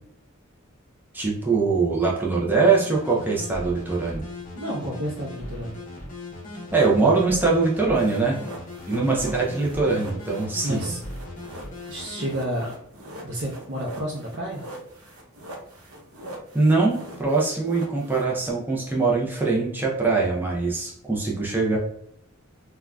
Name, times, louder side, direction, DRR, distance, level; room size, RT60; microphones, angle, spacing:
voice 1, 1.1-4.2 6.7-8.4 8.9-10.8 16.5-21.8, right 3 dB, 10° right, -4 dB, 0.5 m, -22 dB
sound 1, 2.7-12.4, left 1 dB, 40° left, 0.7 m, -38 dB
voice 2, 4.5-5.8 10.6-11.0 11.9-12.7 13.2-14.6, equal, 55° right, -3 dB, 0.6 m, -30 dB
sound 2, 7.9-18.5, right 1 dB, 90° right, 0.7 m, -43 dB
3.6 x 2.2 x 2.2 m, 0.71 s
head